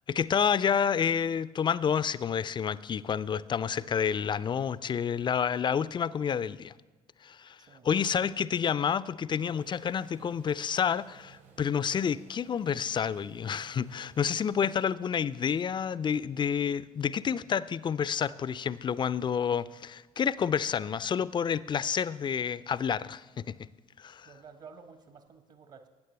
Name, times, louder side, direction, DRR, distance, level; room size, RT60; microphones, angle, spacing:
voice 1, 0.1-6.7 7.2-7.6 7.8-23.5 24.0-24.3, left 7 dB, 25° left, 18 dB, 0.4 m, -29 dB
sound 1, 9.4-14.5, right 7 dB, 70° right, 3.1 m, -56 dB
voice 2, 24.2-25.9, right 5 dB, 45° right, 7 dB, 1.2 m, -51 dB
20.0 x 9.1 x 3.3 m, 1.3 s
figure-of-eight pair, 50°, 19 cm